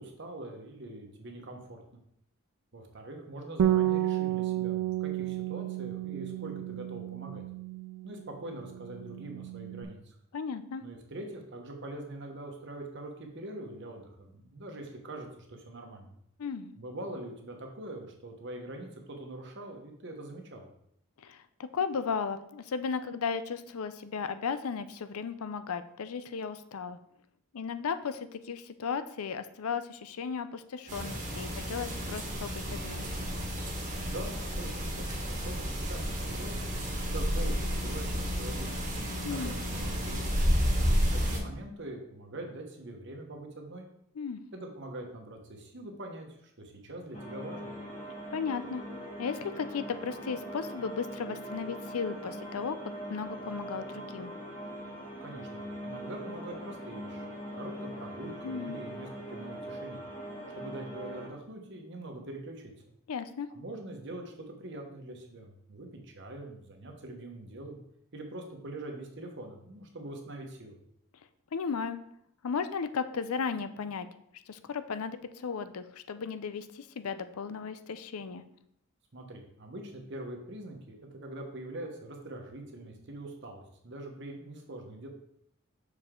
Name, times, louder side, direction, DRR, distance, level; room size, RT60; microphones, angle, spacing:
voice 1, 0.0-1.8 2.7-7.4 8.0-10.2 10.8-16.1 16.8-20.7 34.0-40.3 41.0-43.9 44.5-47.7 55.2-57.2 57.5-60.0 60.5-62.7 63.5-67.8 68.1-70.8 79.1-85.1, right 1 dB, 55° right, 2 dB, 1.1 m, -43 dB
Bass guitar, 3.6-8.3 8.6-9.8, right 12 dB, 80° right, 0.3 m, -31 dB
voice 2, 10.3-10.8 16.4-16.7 21.2-21.4 21.7-27.0 27.5-33.0 39.2-39.5 44.2-44.4 48.3-48.8 49.2-52.8 53.1-54.3 58.4-58.8 63.1-63.5 71.5-72.0 72.4-74.1 74.5-78.4, left 6 dB, 90° left, 11 dB, 0.5 m, -35 dB
sound 1, 30.9-41.4, equal, 35° right, 1.3 m, -31 dB
sound 2, 47.1-61.3, equal, 35° left, 1.5 m, -41 dB
6.2 x 4.9 x 3.7 m, 0.73 s
head